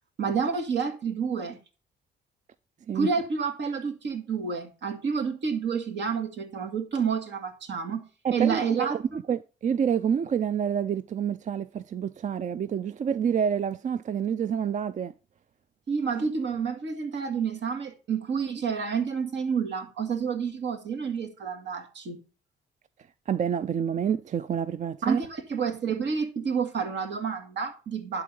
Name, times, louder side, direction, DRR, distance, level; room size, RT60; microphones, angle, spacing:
voice 1, 0.2-1.6 2.9-9.0 15.9-22.2 25.0-28.2, right 6 dB, 65° right, 2.1 m, -29 dB
voice 2, 8.2-15.1 23.3-25.2, right 8 dB, 40° right, 0.4 m, -28 dB
11.5 x 3.9 x 5.3 m
cardioid pair, 90°, 20 cm